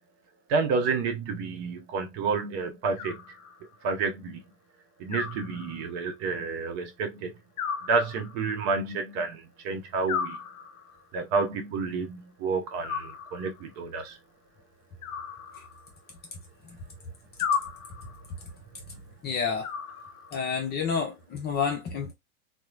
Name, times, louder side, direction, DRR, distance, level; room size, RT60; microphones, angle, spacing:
voice 1, 0.5-3.2 3.8-4.4 5.0-7.3 7.9-10.4 11.1-14.1, right 4 dB, 40° right, 0.7 m, -29 dB
Animal, 3.0-3.9 5.1-6.1 7.6-8.7 10.1-11.1 12.8-13.7 15.0-16.1 17.4-18.3 19.6-20.5, left 7 dB, 65° left, 0.6 m, -35 dB
voice 2, 19.2-19.7 20.3-22.1, left 6 dB, 25° left, 0.6 m, -29 dB
2.9 x 2.1 x 2.4 m
hypercardioid pair, 95°, 45 cm